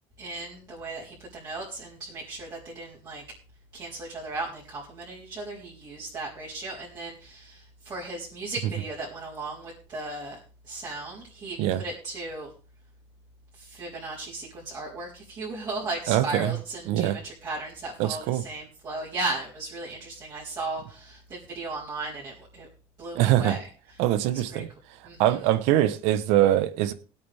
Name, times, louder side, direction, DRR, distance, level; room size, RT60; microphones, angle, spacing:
voice 1, 0.2-3.2 3.7-12.5 13.6-22.7 23.0-23.6 24.3-24.6 25.0-25.2, right 2 dB, 40° right, 3.9 m, -36 dB
voice 2, 16.1-16.6 16.9-17.2 18.0-18.4 23.1-23.6 24.0-24.7 25.2-26.9, right 13 dB, 80° right, 1.0 m, -23 dB
19.5 x 8.7 x 3.5 m
cardioid pair, 140°, 11 cm